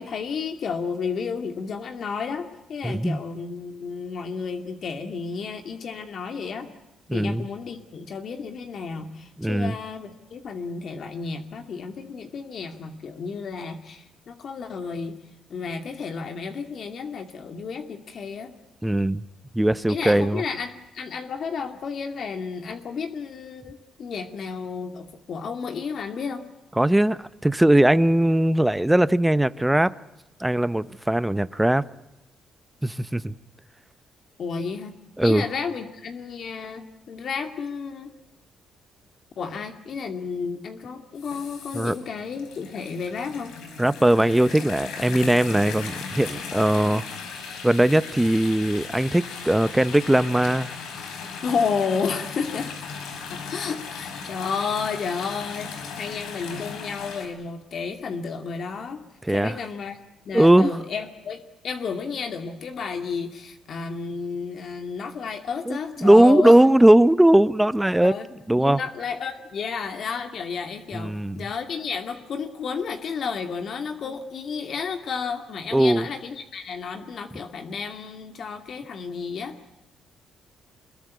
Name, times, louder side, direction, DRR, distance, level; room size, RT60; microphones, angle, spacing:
voice 1, 0.0-6.7 7.1-15.2 15.5-18.5 19.9-26.4 34.4-34.9 35.2-38.1 39.4-43.5 51.4-52.7 53.5-55.7 56.0-59.0 59.3-60.0 60.2-66.5 68.0-68.3 68.5-79.6, left 5 dB, 60° left, 2.4 m, -32 dB
voice 2, 2.8-3.2 7.1-7.5 9.4-9.8 18.8-19.2 19.5-20.4 26.8-29.9 30.4-31.8 32.8-33.4 35.2-35.5 41.7-42.0 43.8-47.1 47.6-50.8 59.2-59.6 60.3-60.7 65.7-68.1 68.5-68.8 70.9-71.4 75.7-76.1, right 1 dB, 10° right, 0.9 m, -19 dB
Filling and Emptying Kitchen Sink (metal), 41.1-57.3, left 5 dB, 85° left, 5.1 m, -37 dB
24.5 x 21.5 x 9.5 m
cardioid pair, 90°, 0 cm